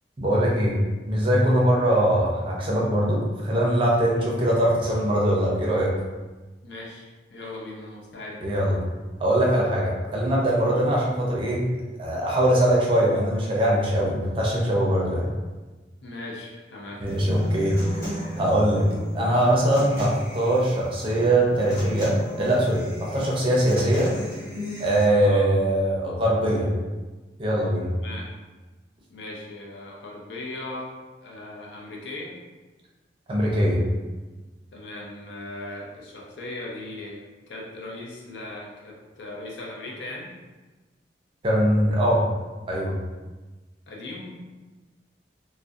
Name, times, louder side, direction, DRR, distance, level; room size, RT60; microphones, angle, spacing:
voice 1, 0.2-0.8 1.1-5.9 8.4-8.8 9.2-11.6 12.0-15.3 17.0-18.8 19.1-24.1 24.8-26.7 27.4-27.9 33.3-33.8 41.4-42.2 42.7-42.9, right 1 dB, 30° right, -4 dB, 0.5 m, -22 dB
voice 2, 6.6-8.6 10.7-10.8 16.0-17.2 19.0-19.1 25.2-25.5 28.0-28.3 29.1-31.0 31.2-32.3 34.7-40.3 43.9-44.5, left 2 dB, 85° left, -2 dB, 0.5 m, -38 dB
Human voice / Acoustic guitar, 17.1-25.1, equal, 20° left, 0.9 m, -36 dB
2.6 x 2.0 x 2.3 m, 1.2 s
head